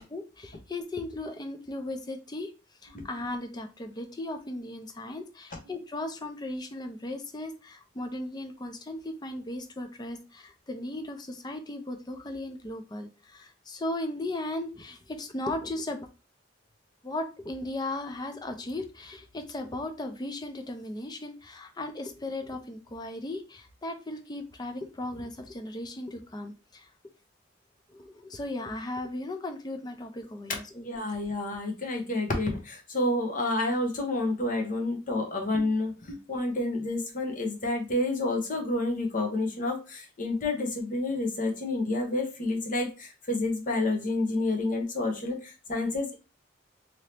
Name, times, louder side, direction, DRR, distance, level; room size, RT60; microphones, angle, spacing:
voice 1, 0.0-2.5 2.8-16.1 17.0-26.9 27.9-30.9, left 1 dB, 20° left, 5 dB, 0.5 m, -37 dB
voice 2, 30.8-46.2, left 2 dB, 45° left, 2 dB, 0.8 m, -29 dB
2.8 x 2.7 x 3.2 m, 0.30 s
head